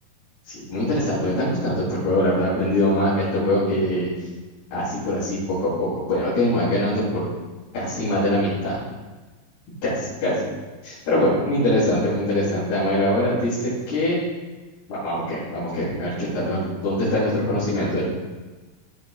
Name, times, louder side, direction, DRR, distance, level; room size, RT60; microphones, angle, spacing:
voice 1, 0.4-4.1 4.7-7.2 7.7-8.8 9.8-10.3 10.8-14.2 14.9-18.0, left 1 dB, 85° left, -11 dB, 5.1 m, -23 dB
14.0 x 7.2 x 2.4 m, 1.2 s
omnidirectional pair, 4.3 m